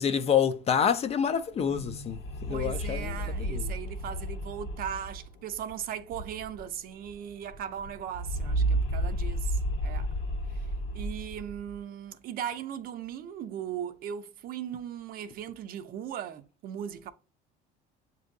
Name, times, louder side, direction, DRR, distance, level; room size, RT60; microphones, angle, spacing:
voice 1, 0.0-2.2 2.5-3.7, left 8 dB, 30° left, 0.4 m, -27 dB
sound 1, 1.6-6.8 7.1-7.2 7.4-11.8, right 1 dB, 75° left, 1.3 m, -33 dB
voice 2, 2.5-10.1 10.5-10.7 10.9-17.1, right 9 dB, 50° right, 0.5 m, -38 dB
7.1 x 2.7 x 2.6 m
cardioid pair, 125°, 20 cm